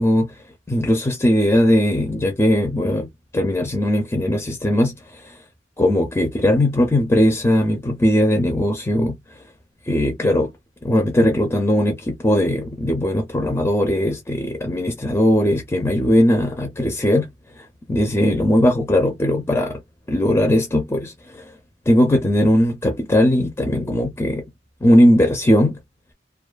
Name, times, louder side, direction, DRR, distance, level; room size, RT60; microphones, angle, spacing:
voice 1, 0.0-5.4 5.8-9.2 9.9-10.5 10.8-17.3 17.5-19.8 20.1-21.5 21.9-24.4 24.8-25.8, left 1 dB, 15° left, 0.4 m, -19 dB
2.4 x 2.2 x 2.3 m
head